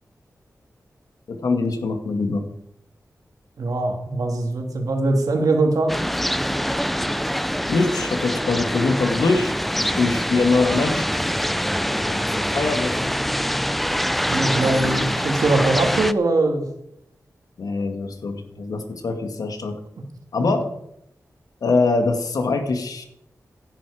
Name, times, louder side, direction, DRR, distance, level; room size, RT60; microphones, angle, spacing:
voice 1, 1.3-2.4 7.6-9.5 9.9-11.1 12.0-13.1 14.5-15.1 17.6-19.8 20.3-20.7 21.6-23.1, left 3 dB, 85° left, 6 dB, 2.0 m, -23 dB
voice 2, 3.6-6.0 14.3-16.6, right 2 dB, 75° right, 4 dB, 2.6 m, -21 dB
sound 1, 5.9-16.1, equal, ahead, 0.5 m, -24 dB
16.0 x 10.0 x 5.0 m, 0.78 s
wide cardioid pair, 100°, 6 cm